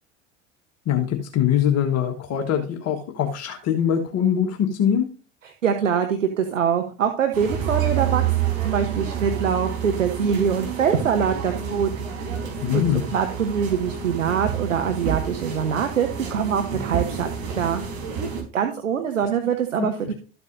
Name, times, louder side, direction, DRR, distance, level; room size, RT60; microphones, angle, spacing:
voice 1, 0.8-5.1 12.6-13.1 19.8-20.1, left 9 dB, 40° left, 4 dB, 1.5 m, -23 dB
voice 2, 5.4-11.9 12.7-17.8 18.5-20.1, right 7 dB, 80° right, 5 dB, 1.1 m, -24 dB
sound 1, 7.3-18.4, right 8 dB, 55° right, 4.1 m, -28 dB
13.5 x 8.0 x 2.7 m, 0.36 s
figure-of-eight pair, 75°, 37 cm